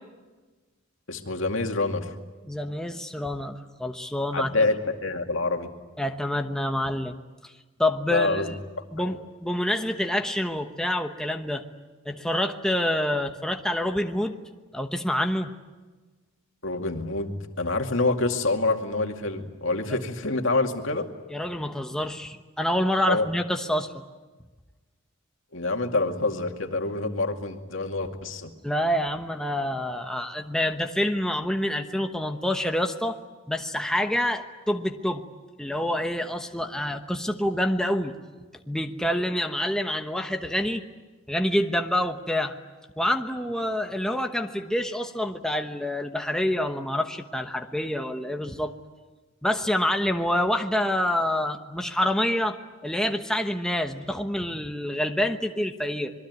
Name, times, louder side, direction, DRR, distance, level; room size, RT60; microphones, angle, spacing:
voice 1, 1.1-2.1 4.3-5.7 8.1-8.5 9.0-9.2 16.6-21.1 23.1-23.3 25.5-28.5, left 3 dB, 70° left, 4 dB, 2.3 m, -26 dB
voice 2, 2.5-4.5 6.0-7.2 7.4-7.5 7.8-8.6 8.9-11.6 12.0-14.3 14.7-15.5 21.3-24.0 28.6-33.2 33.5-35.2 35.6-38.1 38.7-40.8 41.3-42.5 43.0-48.7 49.4-52.6 52.8-56.1, left 1 dB, 5° left, 4 dB, 1.1 m, -27 dB
26.0 x 22.5 x 9.5 m, 1.3 s
head